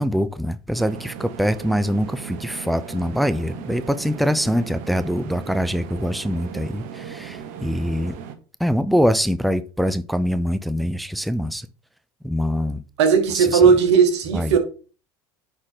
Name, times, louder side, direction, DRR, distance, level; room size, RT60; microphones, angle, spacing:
voice 1, 0.0-8.2 8.6-11.7 12.2-12.8 13.3-13.6 14.3-14.5, equal, ahead, 0.6 m, -23 dB
sound 1, 0.7-8.3, right 8 dB, 65° right, 1.1 m, -37 dB
voice 2, 13.0-14.6, right 6 dB, 80° right, 1.7 m, -16 dB
9.6 x 4.3 x 3.9 m
hypercardioid pair, 75°, 14 cm